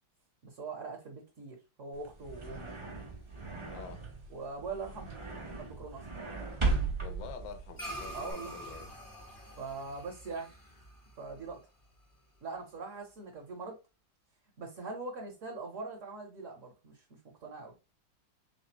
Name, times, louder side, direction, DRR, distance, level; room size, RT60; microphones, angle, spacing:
voice 1, 0.4-2.7 4.3-5.1 5.5-6.0 8.1-8.5 9.6-10.5 11.2-11.6 12.4-13.8 14.6-17.0 17.4-17.7, right 4 dB, 50° right, 1.1 m, -42 dB
sound 1, 1.9-8.3, right 3 dB, 30° right, 0.5 m, -37 dB
voice 2, 3.7-4.0 7.0-8.9, left 6 dB, 80° left, 1.4 m, -46 dB
sound 2, 7.8-12.4, equal, 15° left, 0.7 m, -46 dB
3.8 x 3.3 x 2.8 m
omnidirectional pair, 2.0 m